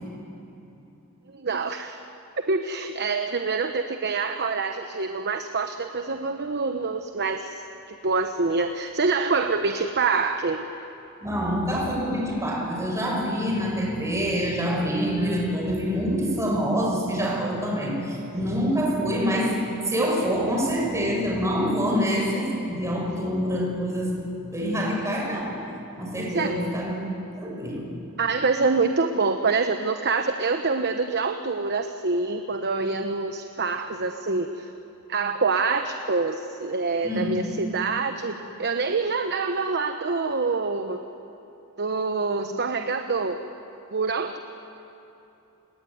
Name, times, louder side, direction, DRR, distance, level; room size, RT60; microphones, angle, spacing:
voice 1, 1.3-2.0 2.4-10.7 26.3-26.5 28.2-34.7 35.1-41.0 41.8-43.4 43.9-44.4, right 4 dB, 50° right, 7 dB, 1.0 m, -26 dB
voice 2, 11.2-19.6 19.9-24.2 24.5-25.6 26.0-27.0 27.3-27.9 37.0-37.4, equal, 15° right, -2 dB, 5.9 m, -26 dB
29.5 x 20.5 x 9.5 m, 3.0 s
head